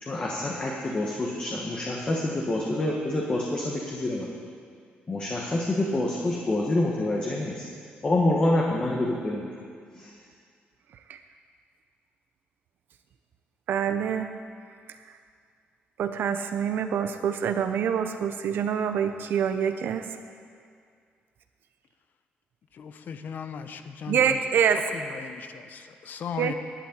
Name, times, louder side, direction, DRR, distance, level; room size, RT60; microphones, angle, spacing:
voice 1, 0.0-4.3 5.1-7.6 8.0-9.5 9.9-10.1, left 1 dB, 30° left, -2 dB, 1.4 m, -27 dB
voice 2, 13.7-14.3 14.9-15.0 16.0-20.1 24.1-24.9 26.4-26.5, right 8 dB, 70° right, 7 dB, 0.7 m, -26 dB
voice 3, 22.8-24.2 25.1-26.5, left 7 dB, 60° left, 9 dB, 0.8 m, -37 dB
11.5 x 8.6 x 8.6 m, 2.2 s
cardioid pair, 130°, 4 cm